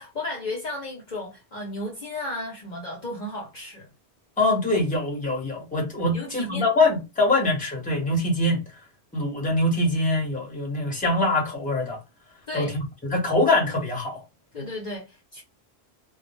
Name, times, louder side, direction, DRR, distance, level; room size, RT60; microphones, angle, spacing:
voice 1, 0.0-3.9 6.1-6.7 12.5-12.7 14.5-15.4, left 2 dB, 50° left, 0.7 m, -34 dB
voice 2, 4.4-8.6 9.1-12.0 12.5-14.2, left 2 dB, 10° left, 0.8 m, -23 dB
2.3 x 2.0 x 3.0 m
omnidirectional pair, 1.1 m